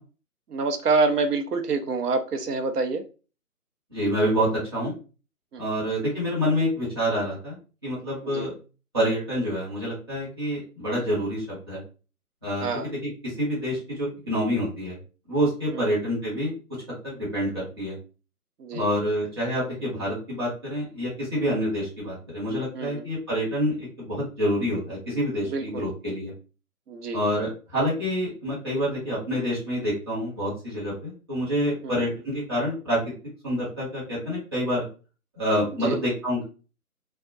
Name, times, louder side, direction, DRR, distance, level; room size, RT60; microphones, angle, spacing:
voice 1, 0.5-3.0 5.5-5.7 8.2-8.5 12.6-12.9 15.7-15.9 18.6-18.8 22.7-23.0 25.5-25.9 26.9-27.2 31.8-32.0 35.8-36.0, right 3 dB, 85° right, 6 dB, 0.7 m, -26 dB
voice 2, 3.9-4.9 5.6-7.6 7.8-8.5 8.9-11.8 12.4-12.7 13.0-15.0 15.3-16.5 17.0-18.0 18.7-26.3 27.1-33.0 33.4-34.8 35.3-36.4, equal, 15° right, -8 dB, 0.7 m, -27 dB
2.3 x 2.1 x 2.6 m, 0.34 s
figure-of-eight pair, 155°, 45 cm